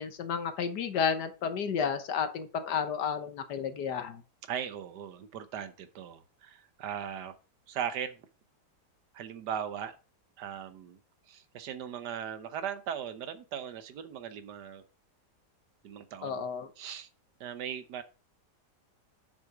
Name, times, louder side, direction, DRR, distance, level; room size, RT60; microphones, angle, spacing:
voice 1, 0.0-4.2 16.2-16.7, left 7 dB, 75° left, 9 dB, 1.6 m, -32 dB
voice 2, 4.5-7.3 7.7-8.2 9.1-10.0 10.4-11.0 11.3-14.8 15.8-16.5 16.8-17.1 17.4-18.0, right 8 dB, 80° right, 12 dB, 1.5 m, -38 dB
6.9 x 6.4 x 4.9 m, 0.34 s
omnidirectional pair, 1.8 m